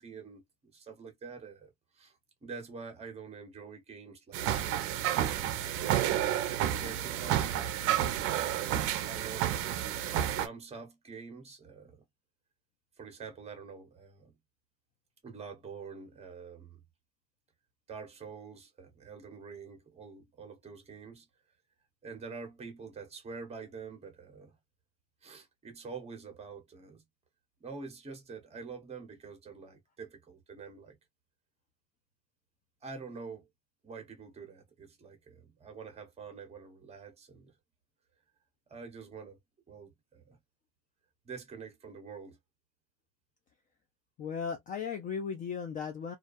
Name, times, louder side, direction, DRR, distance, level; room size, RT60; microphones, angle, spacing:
voice 1, 0.0-4.9 6.2-7.7 8.3-9.8 10.3-12.0 13.0-14.3 15.2-16.8 17.9-21.3 22.0-24.6 25.2-27.0 27.6-31.0 32.8-33.5 33.8-37.5 38.7-39.4 39.7-40.4 41.2-42.4, right 5 dB, 20° right, 1.0 m, -46 dB
sound 1, 4.3-10.5, right 11 dB, 45° right, 0.5 m, -30 dB
voice 2, 44.2-46.1, left 6 dB, 25° left, 0.3 m, -36 dB
2.4 x 2.2 x 2.5 m
supercardioid pair, 135°, 31 cm